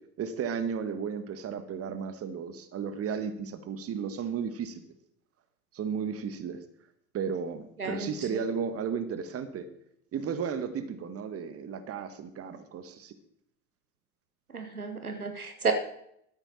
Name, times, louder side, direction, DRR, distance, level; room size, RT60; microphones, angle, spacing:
voice 1, 0.2-4.9 5.7-6.6 7.1-9.7 10.1-13.2, right 6 dB, 35° right, 10 dB, 1.5 m, -34 dB
voice 2, 7.8-8.4 14.5-15.7, right 4 dB, 90° right, 7 dB, 1.0 m, -32 dB
12.5 x 9.7 x 4.3 m, 0.74 s
figure-of-eight pair, 65°, 43 cm